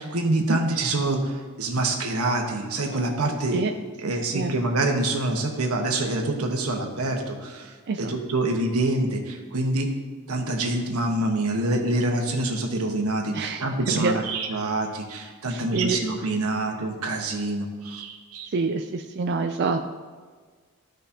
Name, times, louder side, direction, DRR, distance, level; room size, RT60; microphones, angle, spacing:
voice 1, 0.0-1.3 1.6-3.6 4.0-7.7 8.0-9.9 10.3-18.5, right 2 dB, 90° right, 2 dB, 1.2 m, -26 dB
voice 2, 4.0-4.5 7.9-8.1 13.3-14.2 15.5-16.0 18.5-19.9, right 4 dB, 50° right, 4 dB, 0.4 m, -27 dB
14.5 x 5.2 x 2.8 m, 1.5 s
head